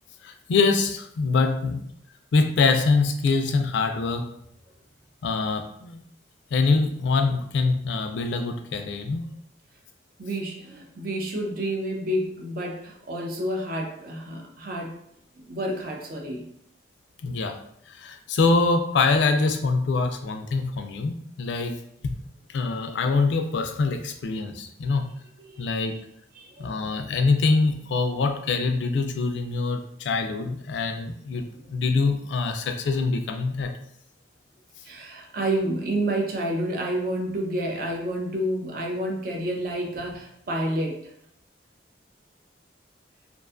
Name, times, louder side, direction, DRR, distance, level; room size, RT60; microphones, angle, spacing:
voice 1, 0.2-1.8 2.3-4.3 5.2-6.0 6.5-9.3 17.2-17.6 17.9-21.8 22.0-22.2 22.5-25.1 25.6-26.0 26.6-31.4 31.7-33.7, left 4 dB, 65° left, 5 dB, 0.3 m, -24 dB
voice 2, 10.2-15.0 15.4-16.5 25.4-26.0 26.4-26.9 34.8-41.1, right 1 dB, 45° right, 1 dB, 0.4 m, -29 dB
2.4 x 2.3 x 2.4 m, 0.70 s
head